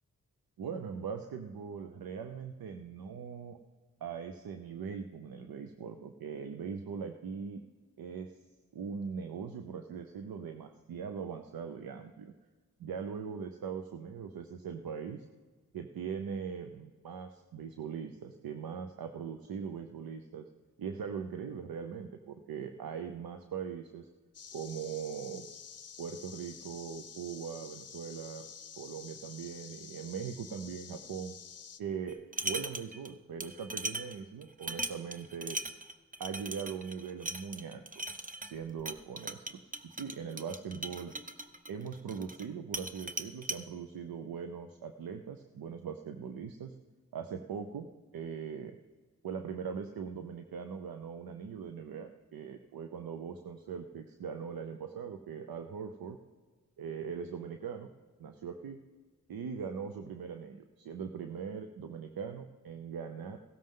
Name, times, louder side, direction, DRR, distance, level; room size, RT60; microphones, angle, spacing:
voice 1, 0.6-3.6 4.0-7.6 8.0-8.3 8.7-12.3 12.8-15.3 15.7-20.5 20.8-24.1 24.5-25.5 26.0-28.5 28.8-31.4 31.8-35.6 36.2-38.0 38.4-41.1 41.7-46.8 47.1-47.9 48.1-48.8 49.2-56.2 56.8-57.9 58.2-58.8 59.3-63.4, right 6 dB, 85° right, 7 dB, 0.7 m, -41 dB
sound 1, 24.3-31.8, left 7 dB, 45° left, 0.7 m, -49 dB
sound 2, 32.1-33.1 33.4-42.5 42.7-43.6, right 2 dB, 25° right, 0.8 m, -39 dB
16.5 x 13.0 x 3.8 m, 1.3 s
cardioid pair, 65°, 35 cm